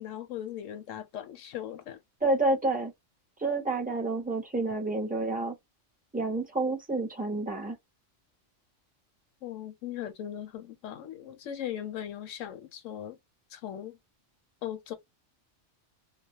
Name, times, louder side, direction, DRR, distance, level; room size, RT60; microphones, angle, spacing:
voice 1, 0.0-2.0 9.4-13.2 13.5-14.0 14.6-14.9, left 10 dB, 85° left, 1.0 m, -38 dB
voice 2, 2.2-2.9 3.4-5.6 6.1-7.8, right 2 dB, 15° right, 0.3 m, -29 dB
2.2 x 2.0 x 2.7 m
omnidirectional pair, 1.3 m